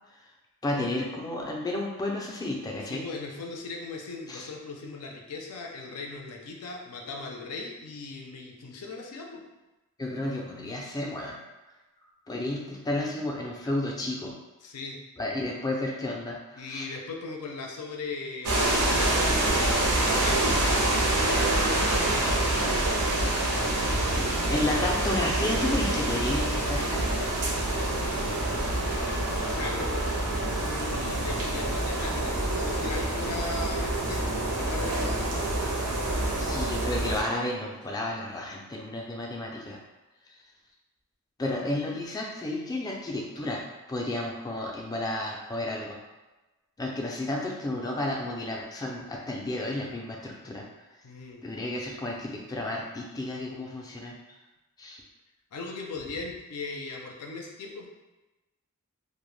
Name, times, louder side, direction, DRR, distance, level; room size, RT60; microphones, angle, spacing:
voice 1, 0.6-3.0 4.3-4.5 10.0-11.4 12.3-14.3 15.2-16.9 24.1-27.2 36.5-39.8 41.4-43.6 43.9-46.0 46.8-50.7 51.4-54.2 54.8-55.0, left 1 dB, 15° left, -1 dB, 0.3 m, -32 dB
voice 2, 2.8-9.4 14.6-15.0 16.6-18.9 19.4-22.4 28.1-29.9 30.6-35.6 51.0-51.4 55.5-57.9, left 3 dB, 90° left, 1 dB, 0.4 m, -39 dB
sound 1, 18.4-37.2, right 1 dB, 75° right, 0.5 m, -26 dB
2.1 x 2.0 x 3.1 m, 1.1 s
head